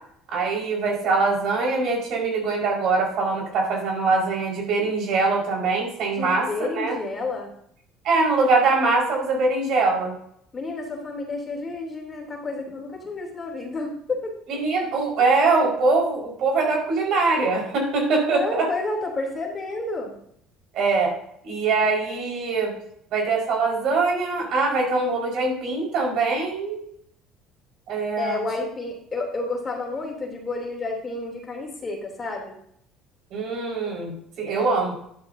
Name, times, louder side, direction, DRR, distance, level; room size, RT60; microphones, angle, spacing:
voice 1, 0.3-6.5 6.7-6.9 8.0-10.1 14.6-18.6 20.7-21.1 21.4-22.7 23.1-26.8 27.9-28.4 33.3-34.9, right 3 dB, 60° right, -1 dB, 5.0 m, -23 dB
voice 2, 6.1-7.5 10.5-14.4 18.2-20.1 28.2-32.5 34.5-34.7, left 3 dB, 25° left, -1 dB, 3.1 m, -30 dB
11.5 x 11.5 x 2.8 m, 0.70 s
cardioid pair, 115°, 0 cm